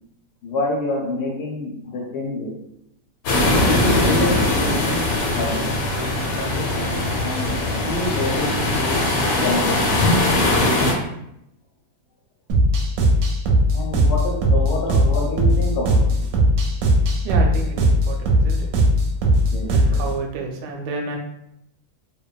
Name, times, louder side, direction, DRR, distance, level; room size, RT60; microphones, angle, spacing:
voice 1, 0.4-2.5 3.5-5.7 6.4-9.0 9.4-10.0 13.7-16.0 19.5-20.0, left 2 dB, 70° left, -1 dB, 1.1 m, -27 dB
sound 1, 3.3-10.9, left 2 dB, 90° left, 1.3 m, -20 dB
sound 2, 12.5-20.1, right 1 dB, 70° right, 0.9 m, -18 dB
voice 2, 17.2-18.7 19.7-21.2, right 3 dB, 90° right, 1 dB, 1.2 m, -30 dB
2.9 x 2.2 x 2.3 m, 0.79 s
omnidirectional pair, 1.8 m